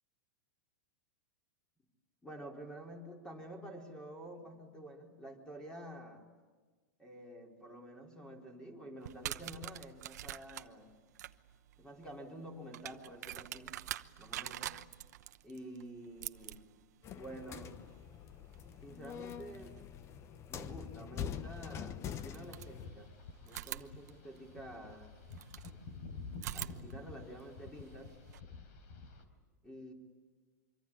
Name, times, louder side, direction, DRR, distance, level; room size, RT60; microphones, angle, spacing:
voice 1, 2.2-6.2 7.0-11.0 11.8-13.8 14.2-14.8 15.4-16.6 17.1-17.7 18.8-19.8 20.5-23.1 23.4-25.2 26.5-28.2 29.6-29.9, right 1 dB, 10° left, 2 dB, 4.4 m, -49 dB
sound 1, 9.0-19.8 21.3-21.4 22.1-23.1 23.5-25.7 26.3-28.4, right 13 dB, 70° right, 1.0 m, -47 dB
sound 2, 17.0-22.8, left 8 dB, 30° left, 1.1 m, -44 dB
sound 3, 22.1-29.2, left 4 dB, 60° left, 4.3 m, -50 dB
25.0 x 24.5 x 8.8 m, 1.4 s
hypercardioid pair, 130°, 9 cm